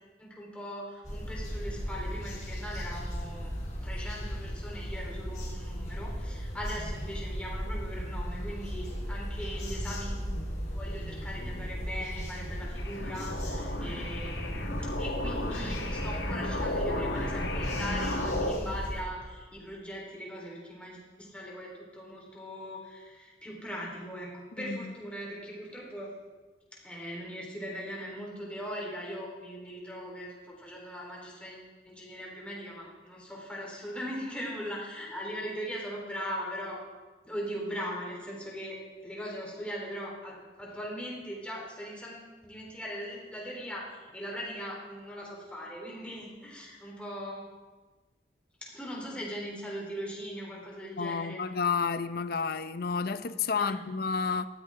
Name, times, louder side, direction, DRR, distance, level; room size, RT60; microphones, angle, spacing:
voice 1, 0.2-10.1 10.7-26.1 26.8-36.8 37.2-38.8 39.0-47.4 48.7-51.4 53.5-53.8, equal, 5° left, -4 dB, 4.0 m, -40 dB
sound 1, 1.0-19.0, equal, 40° left, 4.8 m, -36 dB
sound 2, 12.8-18.5, left 1 dB, 85° left, 1.9 m, -34 dB
voice 2, 24.6-24.9 51.0-54.5, left 5 dB, 55° left, 12 dB, 0.6 m, -30 dB
18.0 x 14.0 x 3.8 m, 1.3 s
head